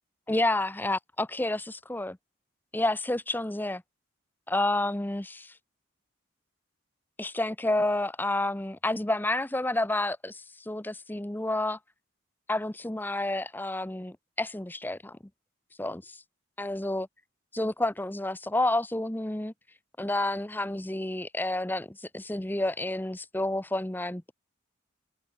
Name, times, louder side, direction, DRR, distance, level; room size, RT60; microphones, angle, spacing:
voice 1, 0.3-2.2 2.7-3.8 4.5-5.5 7.2-11.8 12.5-15.2 15.8-16.2 16.6-17.1 17.5-19.5 20.0-24.3, left 2 dB, 10° left, 0.6 m, -30 dB
head